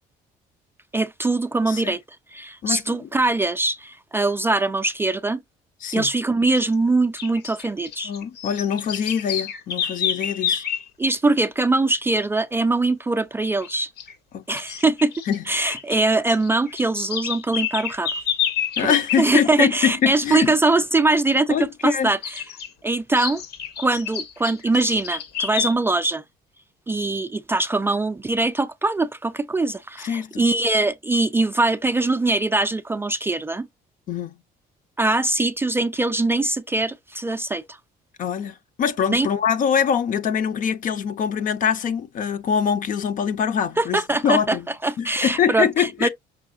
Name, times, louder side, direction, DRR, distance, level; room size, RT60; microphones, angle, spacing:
voice 1, 0.9-2.0 2.3-5.4 5.9-8.1 10.4-10.6 11.0-13.9 14.5-15.1 15.5-18.1 18.8-22.4 22.8-23.4 23.8-26.2 26.9-33.7 35.0-37.8 39.1-39.3 43.8-44.6 44.8-46.1, right 2 dB, 15° right, 0.3 m, -22 dB
voice 2, 2.6-3.1 5.8-6.1 8.0-10.6 14.3-14.4 15.3-15.7 18.8-20.5 21.5-22.1 30.0-30.4 34.1-34.4 38.2-44.7 45.0-46.1, left 8 dB, 50° left, 0.6 m, -24 dB
sound 1, 6.6-6.7 7.2-10.9 13.5-13.7 14.0-14.1 14.6-16.0 16.3-19.2 22.2-22.7 23.2-25.7, left 8 dB, 70° left, 1.1 m, -28 dB
5.5 x 3.4 x 2.4 m
cardioid pair, 110°, 17 cm